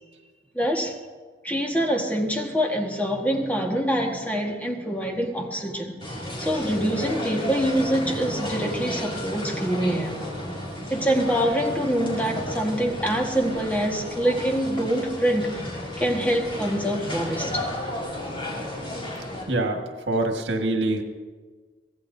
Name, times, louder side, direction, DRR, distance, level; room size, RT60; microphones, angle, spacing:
voice 1, 0.5-1.0 1.4-5.9 6.4-10.2 10.9-15.5 16.0-17.7, equal, 10° left, 1 dB, 1.5 m, -25 dB
sound 1, 6.0-19.4, left 1 dB, 30° left, 4.6 m, -33 dB
voice 2, 19.5-21.0, right 2 dB, 85° right, 3 dB, 1.7 m, -25 dB
24.0 x 16.5 x 2.7 m, 1.5 s
head